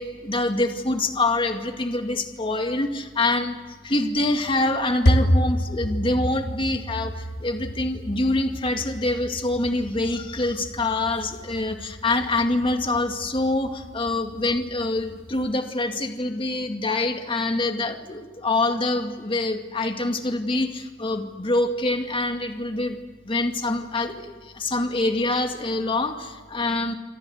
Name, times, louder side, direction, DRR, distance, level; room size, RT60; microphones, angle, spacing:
voice 1, 0.0-23.0 23.2-26.9, left 2 dB, 30° left, 5 dB, 2.2 m, -25 dB
sound 1, 4.1-15.5, equal, 60° left, 1.8 m, -29 dB
28.0 x 25.5 x 8.0 m, 1.5 s
head